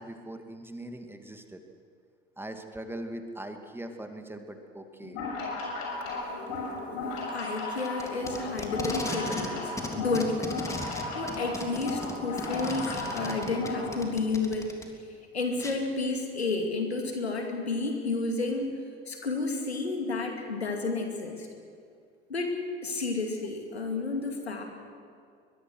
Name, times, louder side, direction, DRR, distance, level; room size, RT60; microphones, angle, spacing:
voice 1, 0.0-1.6 2.4-5.2, right 1 dB, 5° right, 5 dB, 2.3 m, -41 dB
sound 1, 5.0-13.9, left 3 dB, 60° left, 7.0 m, -35 dB
voice 2, 7.3-14.8 15.3-18.7 19.1-21.5 22.3-22.6 22.8-24.6, left 3 dB, 90° left, 3 dB, 2.5 m, -31 dB
Packing tape duct tape, 7.8-9.5 9.8-14.8 15.6-15.7, left 2 dB, 10° left, 3.3 m, -36 dB
22.5 x 22.0 x 6.3 m, 2.3 s
figure-of-eight pair, 65°, 31 cm